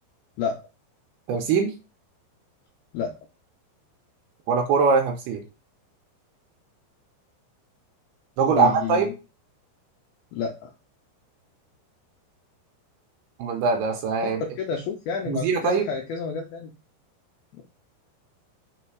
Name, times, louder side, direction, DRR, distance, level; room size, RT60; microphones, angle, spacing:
voice 1, 1.3-1.7 4.5-5.4 8.4-9.1 13.4-14.4 15.3-15.9, right 5 dB, 80° right, 4 dB, 2.5 m, -22 dB
voice 2, 8.4-9.1 10.3-10.7 14.2-16.7 17.5-17.6, left 6 dB, 85° left, 2 dB, 2.1 m, -30 dB
6.4 x 3.3 x 4.6 m, 0.31 s
omnidirectional pair, 5.2 m